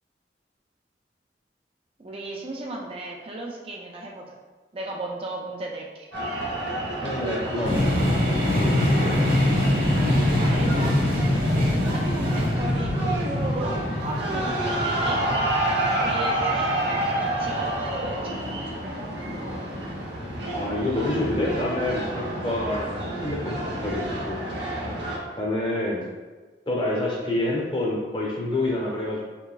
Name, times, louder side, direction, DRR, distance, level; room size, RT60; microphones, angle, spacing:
voice 1, 2.0-4.2 4.7-6.1 10.4-11.0 11.7-15.2 16.0-16.8 17.4-18.7, right 2 dB, 30° right, -1 dB, 0.4 m, -35 dB
sound 1, 6.1-25.2, right 1 dB, 80° right, 0.9 m, -29 dB
voice 2, 7.0-7.8 8.9-9.3 20.5-24.4 25.3-26.0 26.7-29.2, left 1 dB, 25° left, -3 dB, 0.7 m, -27 dB
sound 2, 7.6-19.4, left 1 dB, 50° right, 1.0 m, -24 dB
4.6 x 3.1 x 2.4 m, 1.3 s
head